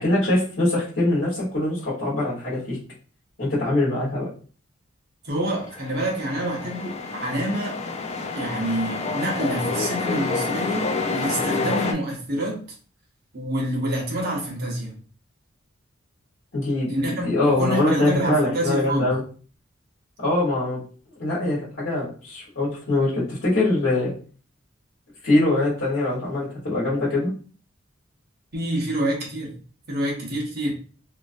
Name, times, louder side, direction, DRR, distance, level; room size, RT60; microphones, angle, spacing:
voice 1, 0.0-2.8 3.4-4.3 16.5-16.9 17.2-19.2 20.2-20.8 21.2-24.1 25.2-27.3, left 2 dB, 65° left, -8 dB, 1.2 m, -23 dB
voice 2, 5.2-7.8 8.3-12.6 13.3-14.9 16.9-19.1 28.5-29.6 29.9-30.7, right 1 dB, 55° right, -2 dB, 1.0 m, -27 dB
sound 1, 5.6-11.9, left 3 dB, 35° left, 0.4 m, -28 dB
2.9 x 2.5 x 2.5 m, 0.41 s
head